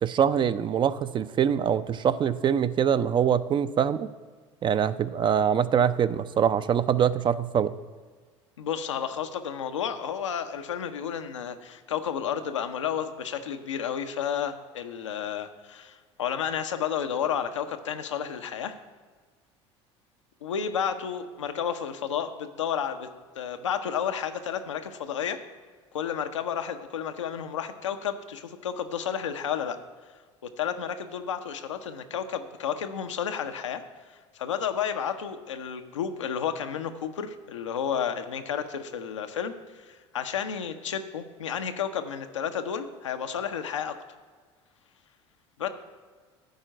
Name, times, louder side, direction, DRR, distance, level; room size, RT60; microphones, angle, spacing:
voice 1, 0.0-4.1 4.6-7.7, right 8 dB, 30° right, 14 dB, 0.4 m, -24 dB
voice 2, 8.6-18.7 20.4-23.1 23.4-25.4 25.9-29.8 30.4-33.8 34.1-39.5 39.8-44.0 45.6-45.7, left 8 dB, 85° left, 7 dB, 0.6 m, -31 dB
10.5 x 4.4 x 7.5 m, 1.5 s
hypercardioid pair, 70°, 15 cm